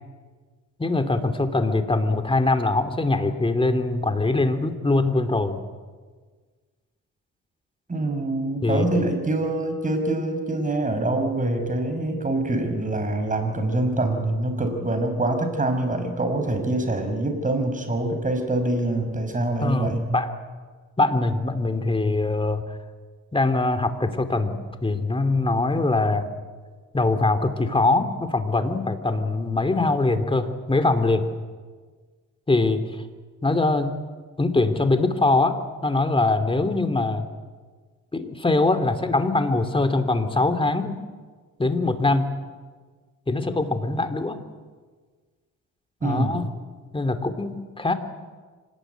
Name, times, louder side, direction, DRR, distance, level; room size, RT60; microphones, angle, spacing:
voice 1, 0.8-5.6 8.6-8.8 19.6-20.3 21.0-22.8 23.3-26.3 26.9-31.3 32.5-32.8 33.4-33.9 34.4-37.3 38.1-41.0 41.6-42.4 43.3-44.4 46.0-46.5 46.9-47.9, left 2 dB, 15° left, 8 dB, 2.7 m, -22 dB
voice 2, 7.9-20.2 46.0-46.4, right 2 dB, 25° right, 6 dB, 5.3 m, -25 dB
26.0 x 19.0 x 9.3 m, 1.5 s
cardioid pair, 90°, 30 cm